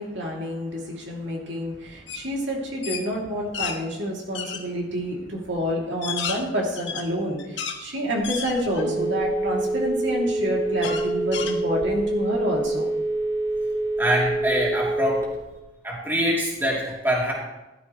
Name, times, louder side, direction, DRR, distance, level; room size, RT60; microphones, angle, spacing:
voice 1, 0.0-12.9, equal, 70° right, -2 dB, 2.7 m, -28 dB
sound 1, 2.1-2.3 2.6-3.8 4.3-4.6 5.3-5.4 5.8-7.8 8.2-9.0 9.5-9.6 10.8-12.1, left 7 dB, 70° left, 1.4 m, -32 dB
Telephone, 8.2-15.6, right 2 dB, 15° left, 2.8 m, -26 dB
voice 2, 14.0-15.3 15.8-17.3, equal, 10° right, -4 dB, 2.9 m, -24 dB
15.5 x 12.0 x 3.1 m, 1.0 s
head